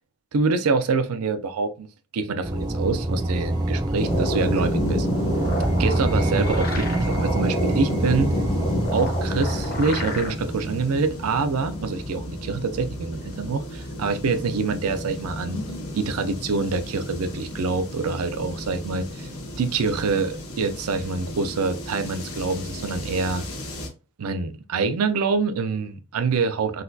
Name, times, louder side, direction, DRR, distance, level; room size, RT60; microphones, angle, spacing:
voice 1, 0.3-1.9 2.1-5.1 5.8-8.4 8.9-15.6 15.9-19.3 19.6-23.4 24.2-26.8, right 4 dB, 80° right, 0.4 m, -25 dB
sound 1, 2.4-11.5, right 1 dB, 20° right, 0.4 m, -26 dB
sound 2, 4.0-23.9, left 1 dB, 80° left, 1.0 m, -36 dB
sound 3, 4.0-10.3, left 1 dB, 40° left, 0.7 m, -29 dB
4.0 x 2.3 x 2.6 m
head